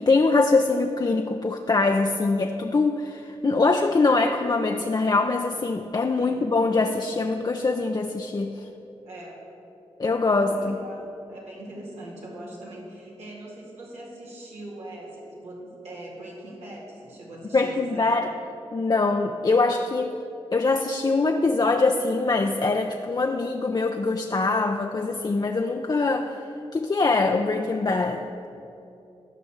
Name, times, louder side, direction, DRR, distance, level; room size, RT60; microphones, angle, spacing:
voice 1, 0.0-8.6 10.0-10.8 17.5-18.3 18.7-20.2 20.5-26.3 26.7-28.2, left 3 dB, 40° left, 4 dB, 0.6 m, -23 dB
voice 2, 6.1-6.5 9.0-9.4 10.3-18.2, right 1 dB, 90° right, -5 dB, 2.2 m, -41 dB
12.0 x 5.1 x 7.2 m, 2.8 s
cardioid pair, 50°, 11 cm